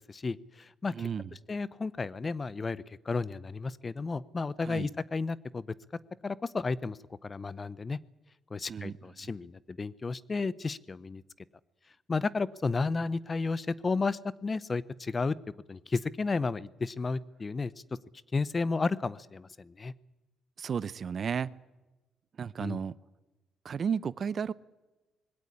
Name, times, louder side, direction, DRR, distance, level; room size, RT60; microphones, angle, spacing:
voice 1, 0.0-1.1 1.5-5.6 6.2-8.0 8.5-11.2 12.1-15.4 15.7-17.7 18.3-19.9 22.6-22.8, left 4 dB, 30° left, 20 dB, 0.7 m, -32 dB
voice 2, 0.9-1.3 4.6-4.9 8.7-8.9 9.2-9.3 20.6-21.5 22.4-23.0 23.6-24.5, right 7 dB, 50° right, 19 dB, 0.6 m, -33 dB
20.5 x 17.0 x 9.9 m, 1.1 s
cardioid pair, 90°, 0 cm